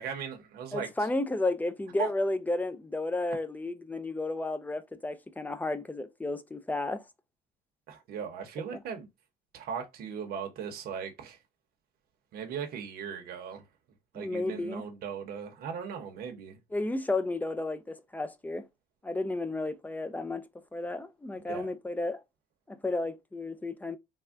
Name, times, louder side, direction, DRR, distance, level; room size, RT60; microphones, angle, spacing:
voice 1, 0.0-0.9 2.0-2.1 7.9-9.1 9.5-11.4 12.3-13.6 14.1-16.6 21.4-21.7, right 7 dB, 65° right, 0.8 m, -38 dB
voice 2, 0.7-7.0 8.7-8.8 14.2-14.8 16.7-18.7 19.0-20.4 20.7-22.2 22.7-24.0, left 2 dB, 10° left, 0.3 m, -32 dB
3.4 x 2.1 x 2.4 m
cardioid pair, 110°, 17 cm